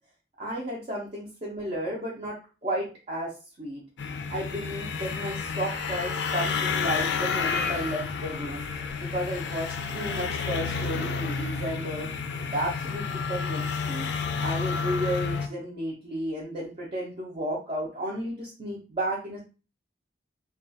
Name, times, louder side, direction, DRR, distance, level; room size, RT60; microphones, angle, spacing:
voice 1, 0.4-2.3 2.6-3.8 4.3-8.7 9.0-12.1 12.4-14.1 14.4-19.4, right 1 dB, 35° right, -5 dB, 0.5 m, -33 dB
sound 1, 4.0-15.5, left 5 dB, 75° left, 0.4 m, -30 dB
2.3 x 2.3 x 2.5 m, 0.34 s
head